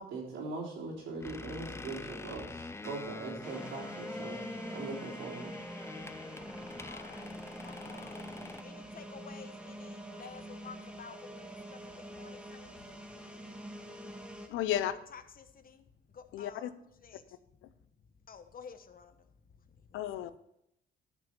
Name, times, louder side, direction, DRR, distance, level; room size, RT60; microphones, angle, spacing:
voice 1, 0.0-4.4 4.7-5.5, right 3 dB, 80° right, 3.5 m, -41 dB
sound 1, 1.2-8.6, left 2 dB, 15° left, 0.5 m, -45 dB
sound 2, 3.4-14.5, equal, 5° right, 1.3 m, -45 dB
voice 2, 6.8-7.3 7.6-8.2 8.6-9.5 9.8-11.4 12.1-12.7 14.7-14.8 15.1-15.7 16.4-16.7 17.0-17.2 18.3-19.0, left 6 dB, 45° left, 1.0 m, -50 dB
voice 3, 14.5-14.9 16.3-16.7 19.9-20.4, left 11 dB, 90° left, 0.6 m, -33 dB
10.5 x 6.1 x 5.2 m
cardioid pair, 90°, 20 cm